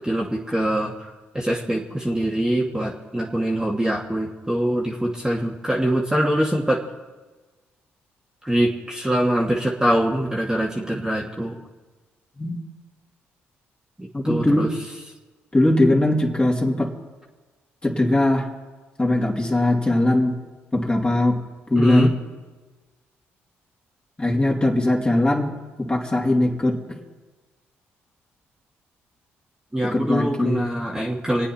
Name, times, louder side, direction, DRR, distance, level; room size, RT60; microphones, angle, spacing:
voice 1, 0.0-0.9 1.3-6.8 8.5-11.6 14.0-14.7 21.8-22.1 29.7-31.5, right 1 dB, 10° right, -3 dB, 2.2 m, -23 dB
voice 2, 14.1-14.8 15.5-16.9 17.8-18.5 19.0-20.3 20.7-21.4 21.7-22.2 24.2-25.5 25.8-26.7 29.8-30.7, left 1 dB, 20° left, -1 dB, 3.2 m, -20 dB
26.5 x 9.0 x 4.4 m, 1.3 s
hypercardioid pair, 50°, 5 cm